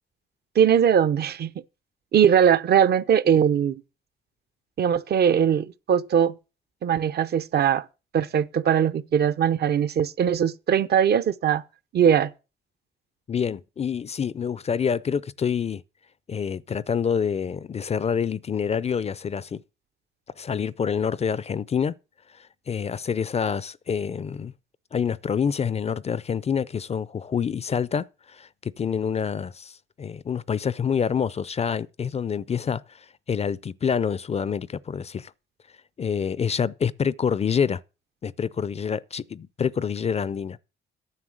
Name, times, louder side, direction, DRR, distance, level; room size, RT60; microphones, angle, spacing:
voice 1, 0.6-1.5 2.1-3.8 4.8-6.3 6.8-7.8 8.1-11.6 11.9-12.3, right 8 dB, 55° right, 0.7 m, -20 dB
voice 2, 13.3-15.8 16.3-19.6 20.4-22.0 22.3-24.5 24.9-35.3 36.0-37.8 38.2-40.6, left 7 dB, 30° left, 0.4 m, -27 dB
9.8 x 6.8 x 6.3 m
cardioid pair, 90°, 20 cm